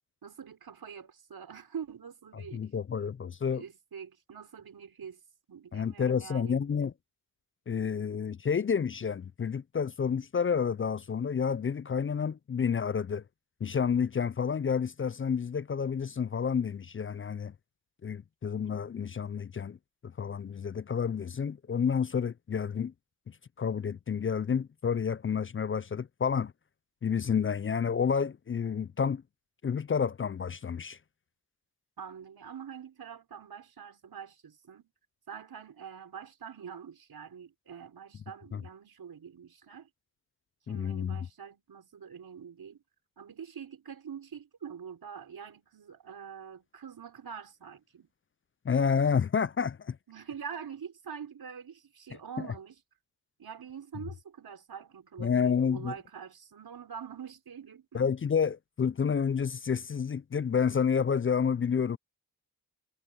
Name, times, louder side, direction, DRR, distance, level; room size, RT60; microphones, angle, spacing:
voice 1, 0.2-2.7 3.5-5.2 5.5-6.6 32.0-34.9 35.3-39.9 40.7-42.8 43.2-48.1 50.1-52.8 53.4-58.0, right 7 dB, 85° right, 5.3 m, -45 dB
voice 2, 2.5-3.6 5.7-6.9 7.7-13.2 13.6-17.5 18.0-19.8 20.0-22.9 23.6-26.5 27.0-29.2 29.6-31.0 38.5-38.6 40.7-41.3 48.6-50.0 55.2-55.9 57.9-62.0, left 6 dB, 35° left, 0.4 m, -29 dB
cardioid pair, 70°, 36 cm